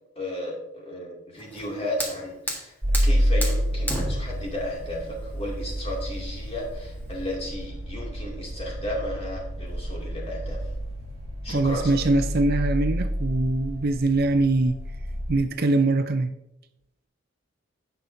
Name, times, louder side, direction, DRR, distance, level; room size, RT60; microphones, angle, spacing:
voice 1, 0.2-2.7 3.0-10.6 11.4-12.1, left 1 dB, 25° left, -2 dB, 2.4 m, -34 dB
Fire, 1.4-7.3, equal, 10° left, 1.4 m, -35 dB
sound 1, 2.8-15.4, equal, 30° right, 2.6 m, -29 dB
voice 2, 11.5-14.8 15.3-16.3, right 2 dB, 45° right, 9 dB, 0.5 m, -23 dB
16.5 x 5.7 x 2.7 m, 0.88 s
head